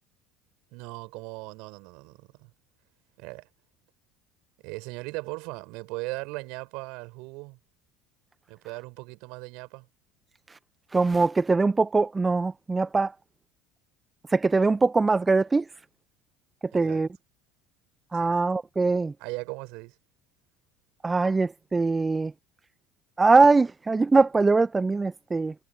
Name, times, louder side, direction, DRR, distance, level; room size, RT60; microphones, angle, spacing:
voice 1, 0.7-2.5 3.2-3.5 4.6-7.6 8.5-9.9 16.7-17.1 18.1-18.4 19.2-20.0, right 27 dB, 60° right, 5.6 m, -38 dB
voice 2, 10.9-13.1 14.3-15.6 16.7-17.1 18.1-19.1 21.0-22.3 23.2-25.5, right 3 dB, 20° right, 1.0 m, -22 dB
figure-of-eight pair, 65°, 0 cm